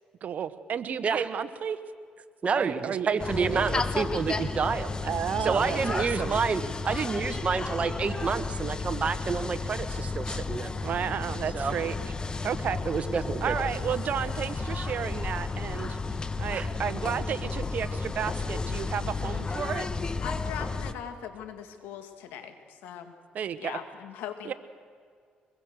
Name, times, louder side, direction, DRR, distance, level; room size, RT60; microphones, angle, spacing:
voice 1, 0.2-1.8 2.5-3.8 5.0-6.4 10.8-11.9 12.4-12.8 13.4-16.0 16.4-19.9 23.3-23.8 24.4-24.5, right 8 dB, 60° right, 13 dB, 1.2 m, -32 dB
voice 2, 2.4-4.9 5.4-10.7 11.5-11.7 12.8-13.5 16.5-16.7, right 5 dB, 40° right, 10 dB, 1.4 m, -29 dB
sound 1, 3.2-20.9, left 4 dB, 25° left, 1.2 m, -33 dB
voice 3, 20.2-23.1 23.6-24.5, left 9 dB, 90° left, 7 dB, 2.2 m, -40 dB
24.0 x 21.5 x 6.6 m, 2.1 s
cardioid pair, 85°, 3 cm